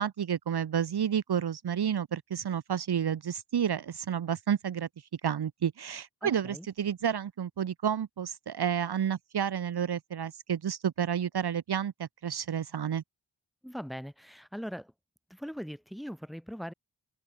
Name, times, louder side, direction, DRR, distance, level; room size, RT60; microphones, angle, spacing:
voice 1, 0.0-4.9 5.2-13.0, right 8 dB, 65° right, 0.8 m, -30 dB
voice 2, 6.2-6.7 13.6-14.9 15.3-16.7, equal, ahead, 6.2 m, -40 dB
wide cardioid pair, 65°, 43 cm